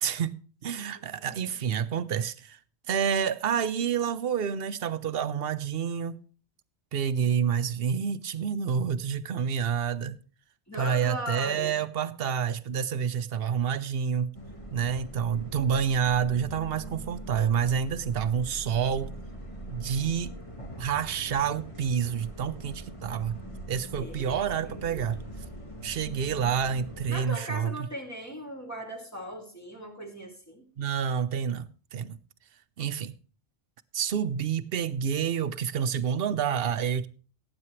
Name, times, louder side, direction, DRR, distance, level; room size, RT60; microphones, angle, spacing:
voice 1, 0.0-2.6 2.9-6.2 6.9-10.2 10.8-14.3 14.7-19.1 19.7-20.3 20.8-23.4 23.7-25.2 25.8-27.7 30.8-32.2 32.8-33.1 33.9-37.1, right 7 dB, 65° right, 0.9 m, -28 dB
voice 2, 1.1-1.6 10.7-11.8 24.0-25.0 27.1-30.7, equal, 15° left, 2.7 m, -38 dB
sound 1, 14.3-27.2, right 1 dB, 30° left, 1.7 m, -42 dB
18.0 x 8.8 x 3.2 m
omnidirectional pair, 1.1 m